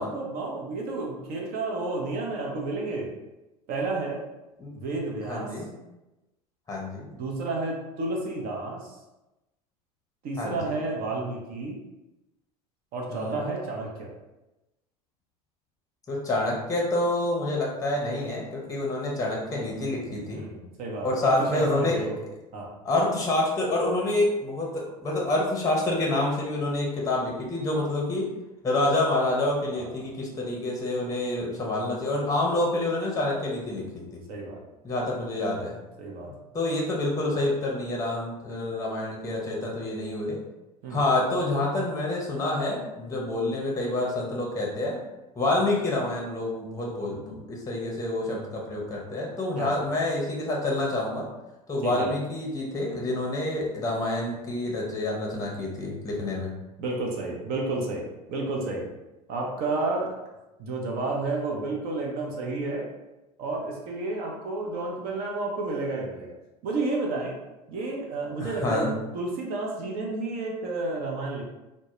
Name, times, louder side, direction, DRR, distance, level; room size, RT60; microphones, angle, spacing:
voice 1, 0.0-3.1 3.7-4.2 4.7-5.5 7.2-9.0 10.2-11.8 12.9-14.1 20.3-22.2 22.5-22.7 29.7-30.0 34.3-34.6 36.0-36.3 40.8-41.0 49.6-49.7 51.8-52.1 56.8-58.9 59.3-60.2 60.6-62.9 63.4-66.3 66.6-67.4 67.7-71.4, right 2 dB, 50° right, 0 dB, 0.5 m, -31 dB
voice 2, 5.2-5.7 6.7-7.1 10.4-10.8 13.1-13.4 16.1-20.4 21.0-22.0 22.8-28.3 28.6-34.0 34.8-35.8 36.5-40.4 40.9-45.0 45.4-51.3 51.7-56.5 68.4-68.9, left 2 dB, 15° left, -2 dB, 0.6 m, -27 dB
2.1 x 2.0 x 2.9 m, 1.0 s
hypercardioid pair, 80°, 20 cm